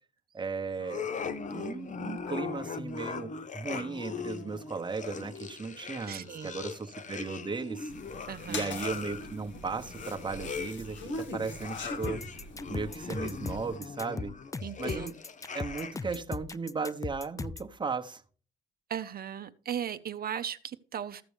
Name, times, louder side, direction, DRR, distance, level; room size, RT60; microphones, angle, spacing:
voice 1, 0.3-1.1 1.5-7.9 8.5-12.2 12.7-14.3 14.8-15.1 15.5-18.2, right 4 dB, 25° right, 5 dB, 1.0 m, -36 dB
sound 1, 0.8-16.2, left 5 dB, 40° left, 0.8 m, -40 dB
voice 2, 6.0-6.6 8.3-8.8 14.6-15.1 18.9-21.2, right 9 dB, 50° right, 10 dB, 0.7 m, -37 dB
sound 2, 7.9-13.8, left 2 dB, 70° left, 1.7 m, -42 dB
sound 3, 12.0-17.7, left 4 dB, 15° left, 0.4 m, -38 dB
14.5 x 5.9 x 3.4 m, 0.41 s
cardioid pair, 90°, 20 cm